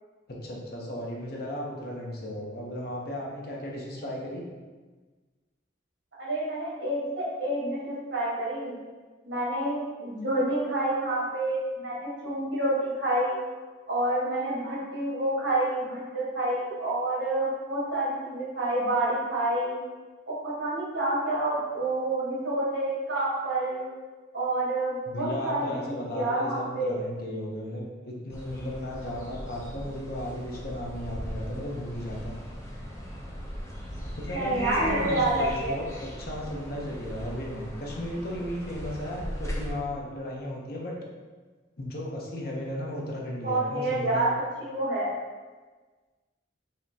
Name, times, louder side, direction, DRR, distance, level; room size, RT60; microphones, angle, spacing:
voice 1, 0.3-4.4 25.1-32.3 34.2-40.9 41.8-44.3, left 1 dB, 50° left, -2 dB, 0.7 m, -35 dB
voice 2, 6.2-8.8 9.2-13.4 13.9-19.8 20.3-23.9 24.3-27.0 34.3-35.8 43.4-44.3 44.6-45.1, right 1 dB, 65° right, -6 dB, 1.4 m, -28 dB
sound 1, 28.3-39.7, equal, 15° left, 0.5 m, -38 dB
5.0 x 2.9 x 2.8 m, 1.4 s
head